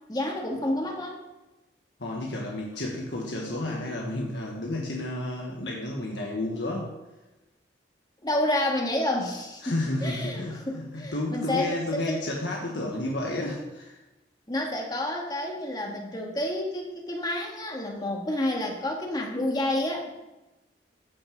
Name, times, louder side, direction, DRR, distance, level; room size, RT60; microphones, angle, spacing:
voice 1, 0.1-1.2 8.2-12.2 14.5-20.1, left 1 dB, 20° left, 0 dB, 1.8 m, -29 dB
voice 2, 2.0-6.9 9.6-14.0, left 1 dB, 80° left, -1 dB, 1.5 m, -31 dB
14.0 x 5.9 x 5.2 m, 1.0 s
head